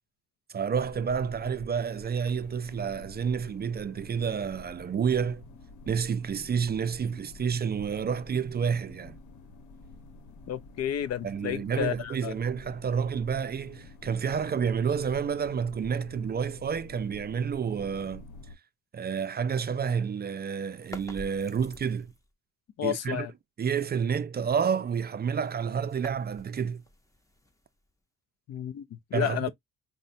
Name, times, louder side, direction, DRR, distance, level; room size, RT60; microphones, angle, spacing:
voice 1, 0.5-5.4 5.9-9.2 11.2-18.3 18.9-22.1 22.8-23.3 23.6-26.8 29.1-29.5, right 7 dB, 35° right, 0.4 m, -29 dB
sound 1, 0.7-18.6, left 2 dB, 85° left, 1.0 m, -49 dB
voice 2, 10.5-12.3 22.8-23.3 28.5-29.5, left 10 dB, 55° left, 0.5 m, -31 dB
sound 2, 20.7-22.3 25.0-28.0, left 1 dB, 10° left, 0.8 m, -48 dB
5.2 x 2.2 x 2.6 m
cardioid pair, 90°, 30 cm